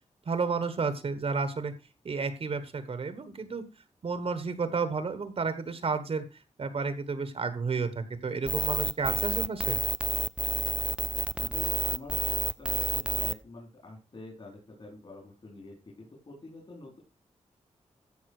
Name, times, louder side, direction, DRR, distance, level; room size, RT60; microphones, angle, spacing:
voice 1, 0.2-1.7 2.0-3.6 4.0-6.2 6.6-9.8, right 4 dB, 55° right, 11 dB, 1.3 m, -31 dB
sound 1, 8.5-13.3, right 2 dB, 10° right, 0.4 m, -29 dB
voice 2, 11.3-17.0, left 2 dB, 45° left, -2 dB, 4.5 m, -47 dB
14.5 x 5.5 x 4.8 m, 0.31 s
wide cardioid pair, 120°, 12 cm